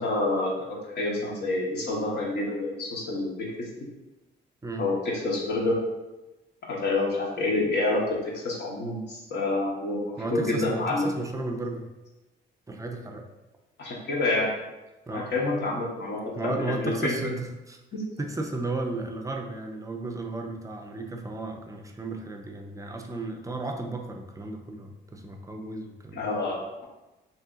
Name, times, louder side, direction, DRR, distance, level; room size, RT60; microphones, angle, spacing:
voice 1, 0.0-3.7 4.8-5.8 6.7-11.1 13.8-14.5 15.1-17.3 17.9-18.0 26.1-26.8, left 2 dB, 60° left, -4 dB, 1.1 m, -28 dB
voice 2, 4.6-4.9 10.2-11.9 12.7-13.3 15.1-15.4 16.3-17.8 18.2-26.3, right 2 dB, 15° right, 3 dB, 0.5 m, -34 dB
2.8 x 2.7 x 3.6 m, 1.0 s
cardioid pair, 90°, 20 cm